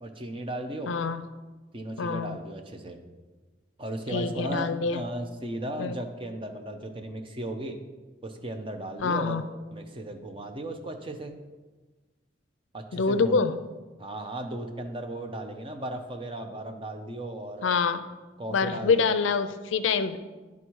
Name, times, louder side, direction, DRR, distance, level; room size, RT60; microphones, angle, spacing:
voice 1, 0.0-1.0 1.7-3.0 3.8-7.8 8.2-9.4 9.7-11.3 12.7-13.4 14.0-17.8 18.4-19.2, right 1 dB, 25° right, 5 dB, 0.6 m, -36 dB
voice 2, 0.9-1.2 2.0-2.4 4.1-5.0 5.8-6.0 9.0-9.4 12.9-13.7 17.6-18.1 18.5-20.2, left 5 dB, 80° left, 11 dB, 0.4 m, -26 dB
10.5 x 3.5 x 4.6 m, 1.3 s
head